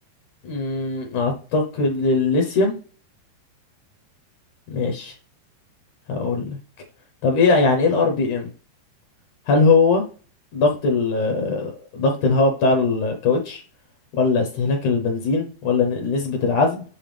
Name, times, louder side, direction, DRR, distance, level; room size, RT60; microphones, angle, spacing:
voice 1, 0.4-2.8 4.7-5.2 6.1-6.6 7.2-8.5 9.5-10.0 10.5-13.6 14.1-16.8, left 3 dB, 70° left, 2.1 m, -20 dB
8.3 x 3.4 x 3.3 m
omnidirectional pair, 4.4 m